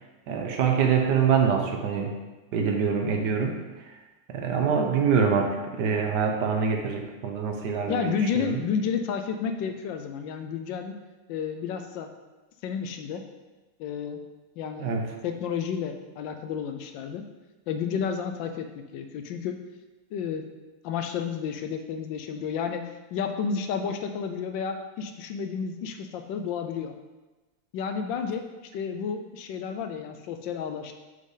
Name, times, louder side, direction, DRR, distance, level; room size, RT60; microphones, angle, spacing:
voice 1, 0.3-2.1 2.5-3.9 4.3-8.6 14.8-15.1, right 6 dB, 70° right, 3 dB, 1.3 m, -25 dB
voice 2, 7.9-11.0 11.3-12.1 12.6-13.2 13.8-14.2 14.6-15.0 15.2-17.2 17.7-19.6 20.1-20.5 20.8-26.9 27.7-28.5 28.7-30.9, left 6 dB, 80° left, 7 dB, 1.3 m, -31 dB
6.3 x 5.4 x 3.8 m, 1.2 s
omnidirectional pair, 2.1 m